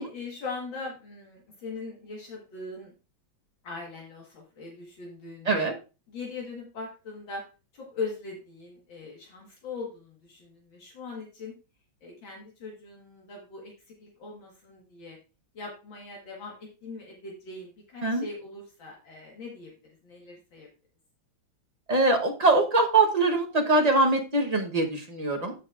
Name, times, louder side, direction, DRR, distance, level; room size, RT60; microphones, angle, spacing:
voice 1, 0.0-2.9 3.6-5.7 6.1-7.4 7.7-11.5 12.0-13.7 14.0-15.2 15.5-20.7, left 4 dB, 70° left, -2 dB, 2.3 m, -40 dB
voice 2, 21.9-25.5, right 2 dB, 35° right, 2 dB, 0.7 m, -23 dB
15.0 x 5.4 x 2.4 m, 0.31 s
omnidirectional pair, 2.2 m